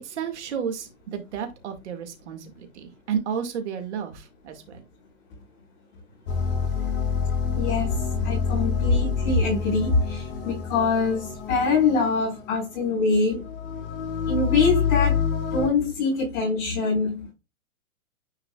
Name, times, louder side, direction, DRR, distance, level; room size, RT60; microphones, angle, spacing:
voice 1, 0.0-4.8, right 7 dB, 55° right, 2.3 m, -32 dB
sound 1, 6.3-15.7, left 6 dB, 40° left, 2.9 m, -27 dB
voice 2, 7.5-13.4 14.3-15.2 15.5-17.3, left 4 dB, 25° left, 4.7 m, -24 dB
10.0 x 4.8 x 2.4 m
hypercardioid pair, 160°, 41 cm